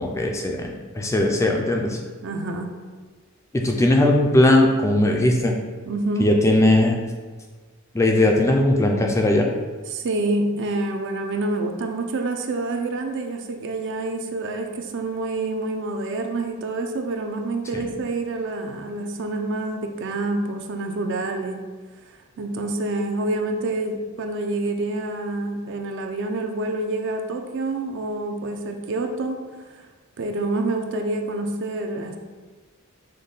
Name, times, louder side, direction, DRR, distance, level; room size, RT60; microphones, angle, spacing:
voice 1, 0.0-2.0 3.5-5.5 6.2-7.0 7.9-9.5 17.7-17.8, left 1 dB, 15° left, 1 dB, 0.3 m, -19 dB
voice 2, 2.2-2.8 5.9-6.3 9.9-21.6 22.4-29.4 29.7-29.8 30.2-32.3, right 2 dB, 55° right, 4 dB, 0.4 m, -27 dB
5.2 x 2.2 x 3.9 m, 1.4 s
head